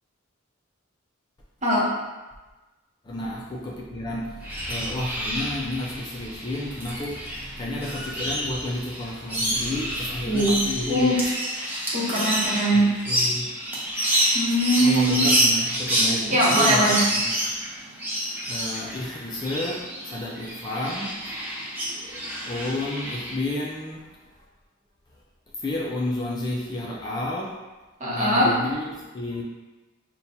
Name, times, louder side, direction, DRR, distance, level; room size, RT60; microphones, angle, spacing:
voice 1, 3.0-11.2 12.3-12.4 12.7-13.5 14.8-17.3 18.5-21.5 21.9-24.5 25.5-27.5 28.1-29.4, left 1 dB, 20° left, -3 dB, 0.4 m, -31 dB
sound 1, 4.4-23.4, equal, 10° right, 0.8 m, -28 dB
voice 2, 10.3-10.6 10.9-11.2 11.9-12.9 14.3-15.2 16.3-17.0 28.0-28.5, right 1 dB, 35° right, -6 dB, 1.0 m, -21 dB
5.6 x 2.2 x 2.7 m, 1.2 s
head